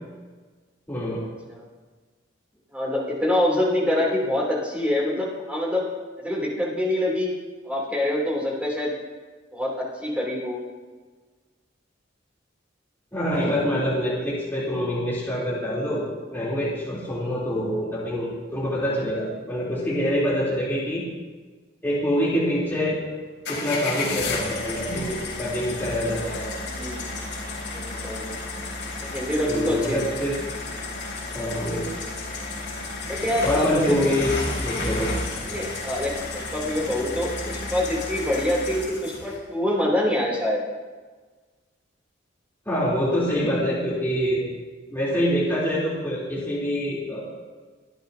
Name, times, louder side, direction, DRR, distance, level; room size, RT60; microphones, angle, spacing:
voice 1, 0.9-1.2 13.1-16.0 16.3-21.0 21.8-23.0 23.5-26.5 29.5-30.4 31.3-31.9 33.4-35.1 42.7-44.4 44.9-47.2, equal, 10° left, -10 dB, 3.7 m, -25 dB
voice 2, 2.7-5.9 6.2-7.3 7.6-8.9 9.5-10.6 26.6-27.2 27.6-28.6 29.0-29.8 33.1-33.9 35.4-40.6, left 1 dB, 5° right, -4 dB, 3.4 m, -25 dB
sound 1, 23.4-39.4, left 2 dB, 65° left, 5.2 m, -32 dB
25.0 x 11.0 x 2.9 m, 1.4 s
head